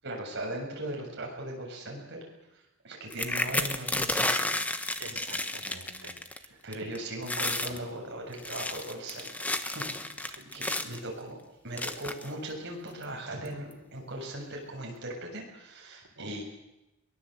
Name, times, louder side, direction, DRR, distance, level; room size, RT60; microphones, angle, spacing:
voice 1, 0.0-2.2 2.5-4.6 6.6-9.9 10.2-11.4 11.6-16.4, right 1 dB, 50° right, 0 dB, 7.2 m, -39 dB
sound 1, 3.1-6.4 6.7-7.0 7.2-7.8 8.3-11.0 11.8-12.3 13.0-13.1 13.4-13.7, left 2 dB, 5° left, 1.0 m, -32 dB
voice 2, 5.0-6.6 10.4-10.5 16.2-16.4, right 2 dB, 75° right, 2 dB, 5.0 m, -48 dB
22.5 x 21.0 x 8.0 m, 0.94 s
head